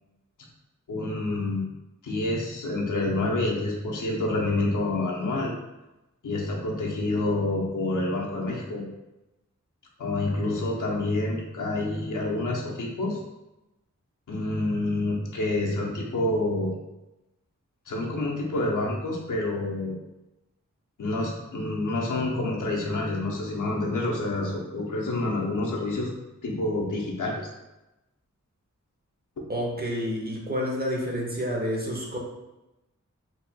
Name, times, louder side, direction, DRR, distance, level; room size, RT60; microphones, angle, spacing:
voice 1, 0.9-1.6 2.0-5.5 6.2-8.8 10.0-13.2 14.3-16.8 17.9-20.0 21.0-26.1 26.4-27.5, left 2 dB, 85° left, -2 dB, 0.8 m, -28 dB
voice 2, 29.5-32.2, equal, 30° right, -2 dB, 0.9 m, -29 dB
4.2 x 2.8 x 2.2 m, 0.97 s
wide cardioid pair, 75°, 31 cm